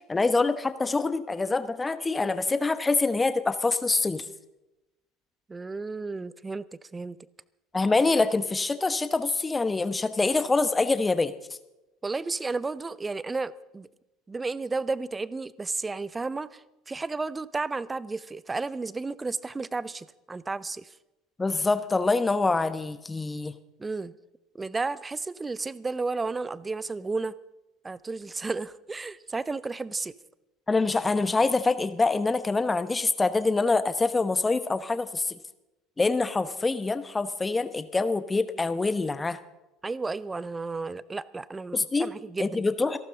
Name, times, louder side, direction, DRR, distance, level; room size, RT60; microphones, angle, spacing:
voice 1, 0.1-4.2 7.7-11.3 21.4-23.5 30.7-35.4 36.0-39.4 41.7-42.1 42.4-43.0, left 3 dB, 15° left, 13 dB, 1.0 m, -25 dB
voice 2, 5.5-7.2 12.0-13.9 14.3-20.9 23.8-24.1 24.5-27.3 27.8-30.1 39.8-42.6, right 3 dB, 20° right, 20 dB, 0.6 m, -33 dB
27.0 x 12.0 x 3.8 m, 0.98 s
figure-of-eight pair, 65°, 0 cm